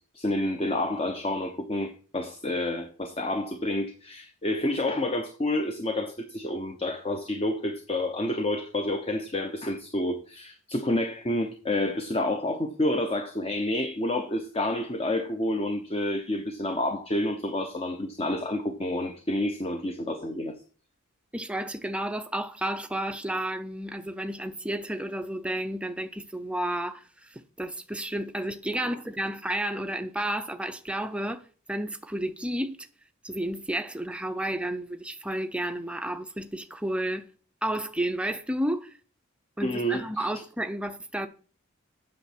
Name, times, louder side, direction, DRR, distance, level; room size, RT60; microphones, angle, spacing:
voice 1, 0.1-20.5 39.6-40.3, left 1 dB, 25° left, 0.9 m, -29 dB
voice 2, 21.3-32.9 33.2-37.3 37.6-38.9 39.6-41.3, right 1 dB, 5° right, 0.6 m, -31 dB
8.7 x 6.4 x 6.1 m
head